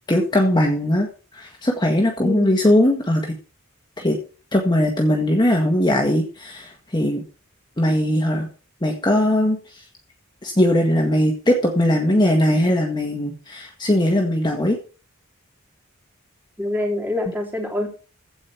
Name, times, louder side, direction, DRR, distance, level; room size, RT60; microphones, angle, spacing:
voice 1, 0.1-3.4 4.0-4.2 4.5-7.2 7.8-8.5 8.8-9.8 10.4-14.8, left 1 dB, 20° left, 1 dB, 1.7 m, -20 dB
voice 2, 2.2-2.6 16.6-17.9, left 2 dB, 10° right, 0 dB, 3.8 m, -25 dB
15.5 x 5.3 x 7.0 m, 0.38 s
head